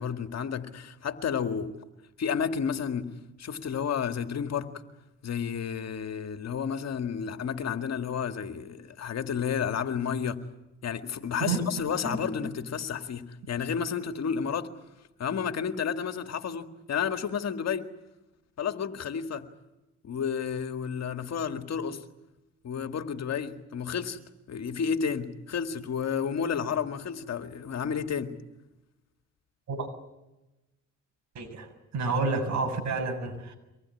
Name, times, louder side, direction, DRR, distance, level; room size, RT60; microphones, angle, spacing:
voice 1, 0.0-1.7 2.2-3.1 3.4-4.8 5.2-10.4 10.8-14.7 15.2-17.9 18.6-19.5 20.0-22.0 22.6-24.2 24.5-28.4, left 7 dB, 60° left, 2.0 m, -31 dB
voice 2, 31.4-31.7 31.9-33.5, right 4 dB, 65° right, 6.9 m, -29 dB
25.0 x 19.5 x 9.8 m
cardioid pair, 90°, 30 cm